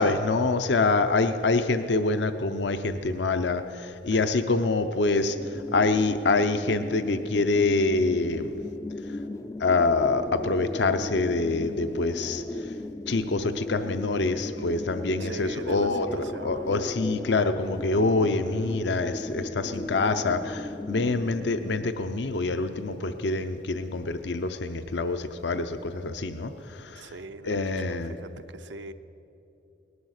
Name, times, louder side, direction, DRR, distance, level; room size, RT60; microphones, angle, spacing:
voice 1, 0.0-8.4 9.6-12.7 13.1-16.1 16.4-27.1 27.4-28.2, left 3 dB, 75° left, 9 dB, 0.7 m, -26 dB
voice 2, 4.1-4.5 15.2-16.9 27.0-28.9, right 2 dB, 80° right, 10 dB, 0.7 m, -41 dB
sound 1, 5.1-21.9, left 2 dB, 20° left, 0.3 m, -37 dB
19.0 x 11.5 x 6.5 m, 2.9 s
head